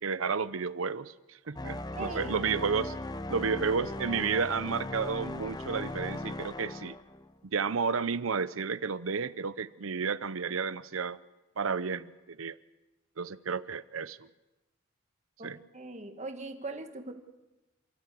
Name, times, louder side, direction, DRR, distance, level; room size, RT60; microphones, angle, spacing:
voice 1, 0.0-2.9 3.3-6.9 7.4-11.2 11.6-12.6 13.2-14.3 15.4-15.6, right 5 dB, 80° right, 15 dB, 0.7 m, -32 dB
sound 1, 1.6-7.4, left 2 dB, 20° left, 0.7 m, -38 dB
voice 2, 1.9-2.3 15.4-17.1, right 3 dB, 35° right, 6 dB, 1.6 m, -40 dB
28.0 x 13.0 x 8.4 m, 1.1 s
head